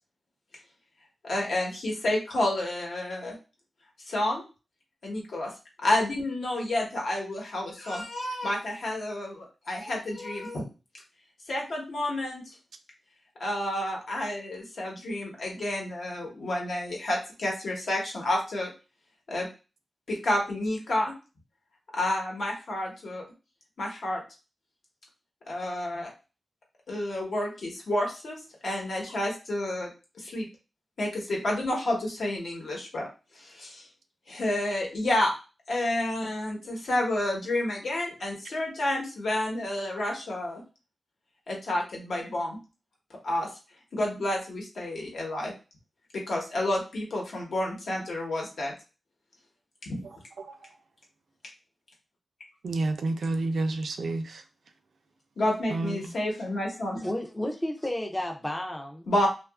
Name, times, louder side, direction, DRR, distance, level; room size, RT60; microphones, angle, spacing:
voice 1, 1.2-3.3 4.1-4.4 5.0-5.5 5.8-10.6 11.5-12.4 13.4-18.7 19.3-19.5 20.1-21.1 21.9-23.2 23.8-24.2 25.5-26.1 26.9-28.4 28.6-29.9 30.2-30.5 31.0-33.1 33.4-33.8 34.3-35.3 35.7-40.6 41.5-42.6 43.2-43.5 43.9-45.5 46.3-48.7 49.9-50.0 55.4-57.0 59.1-59.3, left 1 dB, 70° left, 1.0 m, -30 dB
voice 2, 52.6-54.4 55.7-56.1, right 2 dB, 80° right, 0.4 m, -29 dB
voice 3, 57.0-59.1, left 1 dB, 15° left, 0.4 m, -32 dB
2.8 x 2.3 x 2.3 m
wide cardioid pair, 155°, 0 cm